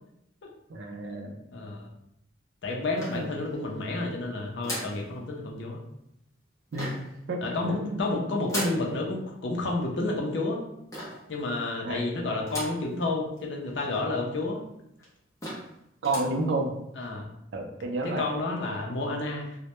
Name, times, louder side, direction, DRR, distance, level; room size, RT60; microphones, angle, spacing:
voice 1, 0.7-1.4 3.1-3.3 6.7-7.0 7.3-7.4 7.7-8.0 8.3-8.4 11.8-12.0 16.0-16.7 17.5-18.2, right 2 dB, 65° right, 3 dB, 0.4 m, -30 dB
voice 2, 1.5-1.9 2.6-5.8 7.4-10.6 11.3-14.6 17.0-17.3 18.0-19.5, left 2 dB, 70° left, 0 dB, 0.5 m, -30 dB
sound 1, 3.0-3.7 4.6-5.0 6.7-7.2 8.5-8.9 10.9-11.3 12.5-12.9 13.4-13.5 13.7-13.8 14.5-14.6 15.0-15.1 15.4-15.7 16.0-16.4, equal, 15° left, 0.6 m, -36 dB
2.1 x 2.1 x 2.9 m, 0.80 s
head